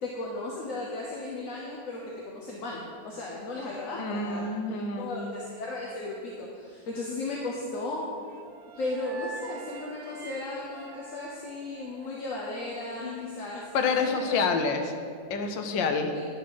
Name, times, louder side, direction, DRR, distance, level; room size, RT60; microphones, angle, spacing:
voice 1, 0.0-8.1 8.8-13.7 14.0-14.4 16.1-16.2, left 2 dB, 55° left, -3 dB, 1.1 m, -36 dB
voice 2, 4.0-5.3 13.0-13.4 13.7-14.9 15.3-16.1, left 4 dB, 90° left, 5 dB, 1.5 m, -28 dB
sound 1, 8.3-12.5, right 4 dB, 85° right, 1.4 m, -45 dB
10.0 x 4.1 x 5.9 m, 2.3 s
omnidirectional pair, 2.0 m